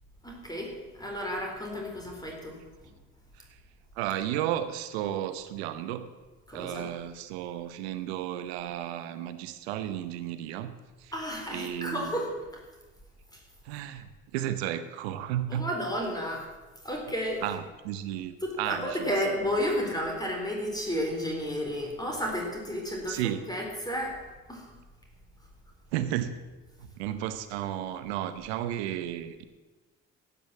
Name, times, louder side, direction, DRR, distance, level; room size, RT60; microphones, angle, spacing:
voice 1, 0.2-2.5 6.5-6.9 11.1-12.3 15.5-16.5 16.8-17.4 18.4-24.2 24.5-24.7, equal, 10° left, 0 dB, 4.1 m, -32 dB
voice 2, 4.0-6.1 6.5-10.7 11.0-11.1 11.5-12.3 13.6-15.7 17.4-19.4 23.1-23.4 25.9-26.3 26.8-29.4, right 12 dB, 90° right, 12 dB, 0.9 m, -33 dB
12.5 x 8.7 x 7.3 m, 1.2 s
hypercardioid pair, 60°, 31 cm